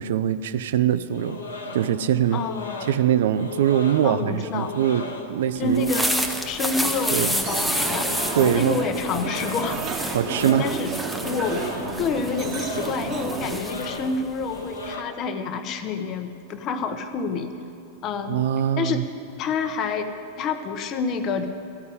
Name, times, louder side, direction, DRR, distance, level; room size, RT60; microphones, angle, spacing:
voice 1, 0.0-1.4 1.7-2.4 2.9-5.8 7.1-7.3 8.3-8.8 10.1-10.7 18.3-19.0, right 10 dB, 60° right, 14 dB, 0.4 m, -22 dB
sound 1, 1.1-15.0, left 3 dB, 75° left, 1.0 m, -37 dB
voice 2, 2.3-2.9 4.0-4.7 5.6-6.1 6.4-8.1 8.4-10.2 10.4-10.9 11.2-17.5 18.0-18.4 18.8-19.0 19.4-21.5, left 4 dB, 35° left, 7 dB, 0.8 m, -28 dB
sound 2, 5.6-14.9, equal, ahead, 0.8 m, -30 dB
sound 3, 7.4-13.6, right 4 dB, 30° right, 1.1 m, -31 dB
14.0 x 5.3 x 9.5 m, 2.8 s
figure-of-eight pair, 90°, 0 cm